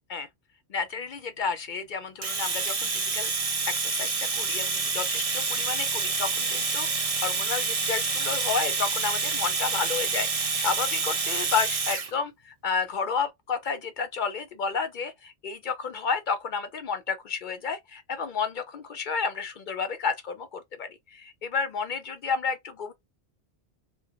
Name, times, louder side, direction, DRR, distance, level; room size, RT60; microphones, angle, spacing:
voice 1, 0.7-3.3 3.7-22.9, left 5 dB, 55° left, 0.6 m, -31 dB
Domestic sounds home sounds, 2.2-12.1, right 4 dB, 35° right, 0.8 m, -28 dB
3.3 x 2.1 x 3.3 m
omnidirectional pair, 1.1 m